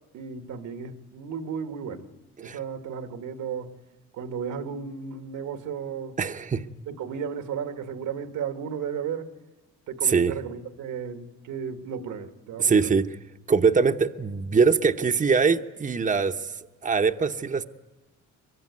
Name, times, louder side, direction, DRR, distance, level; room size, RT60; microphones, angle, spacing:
voice 1, 0.1-2.1 2.4-3.7 4.1-6.1 6.9-9.3 9.9-12.9, right 7 dB, 85° right, 1.8 m, -34 dB
voice 2, 6.2-6.7 10.0-10.4 12.6-13.2 13.5-16.5 16.8-17.6, right 5 dB, 25° right, 0.9 m, -22 dB
23.5 x 23.0 x 9.6 m
cardioid pair, 90°, 30 cm